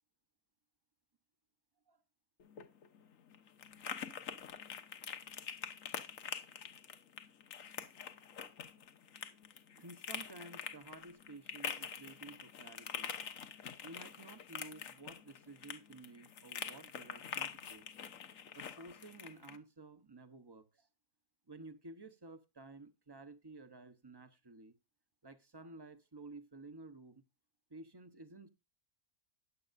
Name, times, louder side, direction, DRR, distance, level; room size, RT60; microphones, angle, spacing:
sound 1, 2.4-19.6, left 7 dB, 65° left, 1.3 m, -46 dB
voice 1, 9.7-13.1 13.8-17.8 18.5-20.9 21.5-24.7 25.2-27.2 27.7-28.5, right 2 dB, 20° right, 0.7 m, -53 dB
14.0 x 10.0 x 2.6 m
omnidirectional pair, 1.5 m